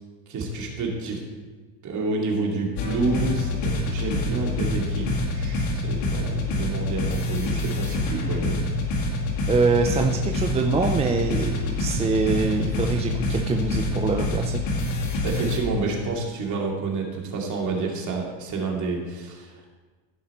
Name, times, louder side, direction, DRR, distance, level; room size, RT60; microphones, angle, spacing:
voice 1, 0.3-1.2 1.8-8.6 15.2-19.7, right 3 dB, 40° right, -1 dB, 2.4 m, -29 dB
sound 1, 2.8-15.6, left 2 dB, 80° left, 2.4 m, -26 dB
voice 2, 9.5-14.6, right 4 dB, 15° right, 3 dB, 0.4 m, -24 dB
15.0 x 5.6 x 4.3 m, 1.4 s
cardioid pair, 125°, 47 cm